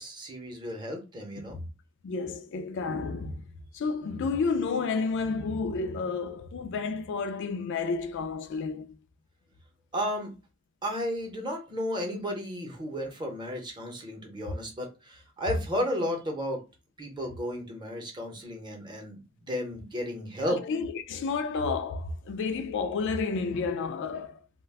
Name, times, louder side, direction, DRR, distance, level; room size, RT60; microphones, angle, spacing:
voice 1, 0.0-1.6 9.9-10.3 10.8-16.6 17.0-20.6, equal, 20° right, 0.7 m, -33 dB
voice 2, 2.0-3.4 3.7-8.9 20.4-24.4, left 4 dB, 55° left, 0.3 m, -31 dB
2.4 x 2.2 x 3.3 m
head